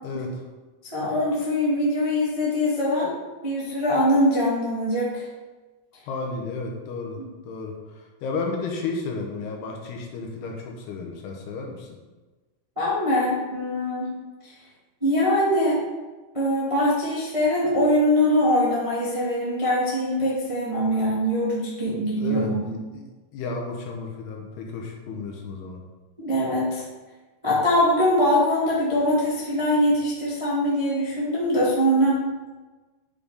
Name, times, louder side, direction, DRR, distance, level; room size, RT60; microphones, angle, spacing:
voice 1, 0.0-0.4 6.1-7.2 7.5-12.0 22.2-22.6 22.9-23.1 23.3-25.8, left 4 dB, 70° left, 1 dB, 2.9 m, -32 dB
voice 2, 0.9-3.1 3.4-5.2 12.7-14.1 14.4-14.5 15.0-15.8 16.3-22.7 26.2-26.8 27.4-32.2, equal, 20° right, -7 dB, 0.9 m, -22 dB
9.4 x 5.7 x 5.1 m, 1.2 s
omnidirectional pair, 5.1 m